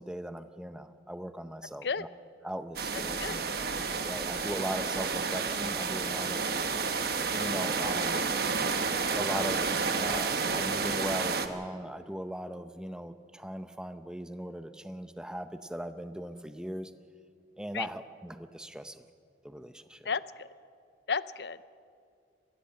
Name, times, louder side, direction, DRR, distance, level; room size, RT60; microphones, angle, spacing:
voice 1, 0.0-2.1 2.4-3.4 4.1-6.5 7.3-8.2 9.1-9.7 10.0-16.9 17.6-19.0 19.4-20.0, equal, 5° right, 10 dB, 0.6 m, -39 dB
sound 1, 2.8-11.5, right 4 dB, 55° right, 1.2 m, -30 dB
voice 2, 20.1-20.5 21.1-21.7, left 5 dB, 65° left, 16 dB, 0.6 m, -33 dB
22.5 x 16.5 x 7.6 m, 2.3 s
head